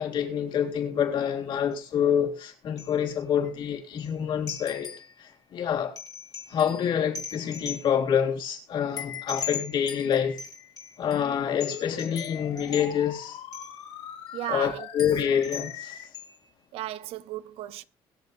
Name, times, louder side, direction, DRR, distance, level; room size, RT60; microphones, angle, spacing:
voice 1, 0.0-6.0 6.5-10.4 11.0-13.4 14.5-16.1, left 8 dB, 55° left, 3.8 m, -27 dB
sound 1, 1.7-1.8 2.8-3.2 3.4-3.5 4.0-4.2 4.5-5.2 6.0-8.1 9.0-11.3 11.6-13.2 13.5-13.9 14.3-14.4 15.0-15.8 16.1-16.5, left 7 dB, 40° left, 2.5 m, -39 dB
sound 2, 11.0-16.0, left 10 dB, 90° left, 2.5 m, -42 dB
voice 2, 14.3-14.9 16.7-17.8, right 14 dB, 75° right, 0.8 m, -35 dB
22.5 x 7.7 x 2.6 m
cardioid pair, 140°, 10 cm